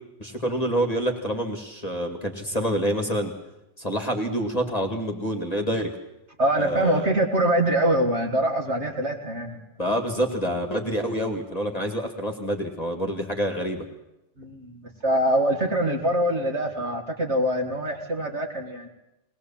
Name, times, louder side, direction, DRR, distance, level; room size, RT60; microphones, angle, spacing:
voice 1, 0.2-3.3 3.8-5.9 6.6-7.1 9.8-13.8, equal, 20° left, 3 dB, 1.9 m, -27 dB
voice 2, 6.4-9.6 14.4-18.9, right 1 dB, 40° right, 3 dB, 2.0 m, -24 dB
20.5 x 19.5 x 7.2 m, 0.93 s
omnidirectional pair, 1.9 m